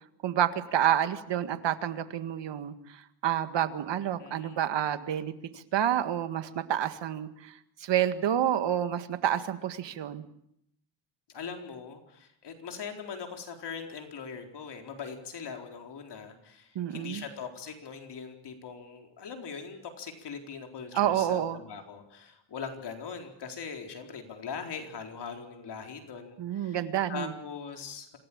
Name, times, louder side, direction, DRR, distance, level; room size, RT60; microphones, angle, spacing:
voice 1, 0.2-7.5 7.8-10.2 16.8-17.2 20.9-21.6 26.4-27.3, right 10 dB, 60° right, 10 dB, 1.9 m, -29 dB
voice 2, 4.2-4.6 11.3-26.8 27.1-28.2, left 6 dB, 55° left, 4 dB, 4.3 m, -41 dB
27.0 x 17.5 x 8.8 m, 0.76 s
cardioid pair, 120°, 47 cm